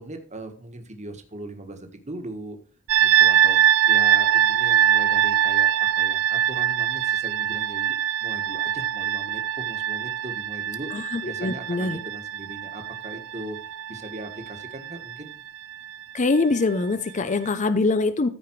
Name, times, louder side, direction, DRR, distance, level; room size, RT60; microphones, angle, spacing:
voice 1, 0.0-2.6 3.0-3.6 3.9-10.9 11.2-13.6 13.9-15.4, right 1 dB, 30° right, 6 dB, 1.6 m, -39 dB
sound 1, 2.9-15.7, right 10 dB, 65° right, 0.5 m, -23 dB
voice 2, 10.9-12.0 16.1-18.3, left 3 dB, 35° left, 12 dB, 0.6 m, -23 dB
14.0 x 5.0 x 4.7 m, 0.42 s
head